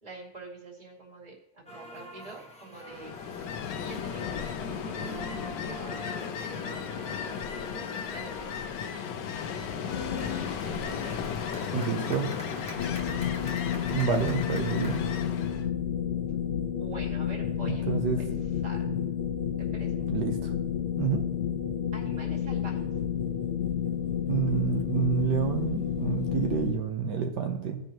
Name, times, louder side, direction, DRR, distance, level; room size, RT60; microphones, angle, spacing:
voice 1, 0.0-3.2 3.8-7.8 8.1-8.8 9.6-11.4 11.7-11.9 16.6-18.3 18.6-18.8 19.6-20.1 21.9-22.8, right 3 dB, 25° right, -2 dB, 2.4 m, -46 dB
sound 1, 1.7-15.0, equal, 5° left, 1.2 m, -46 dB
Ocean, 2.9-15.7, left 7 dB, 85° left, 1.4 m, -35 dB
sound 2, 9.9-10.6 12.7-26.7, left 9 dB, 50° left, 0.8 m, -31 dB
voice 2, 11.7-12.3 13.9-15.1 17.7-18.2 18.8-19.0 20.1-20.5 21.0-21.2 24.3-27.8, right 6 dB, 80° right, 3 dB, 1.5 m, -28 dB
15.5 x 5.5 x 2.9 m, 0.90 s
omnidirectional pair, 1.8 m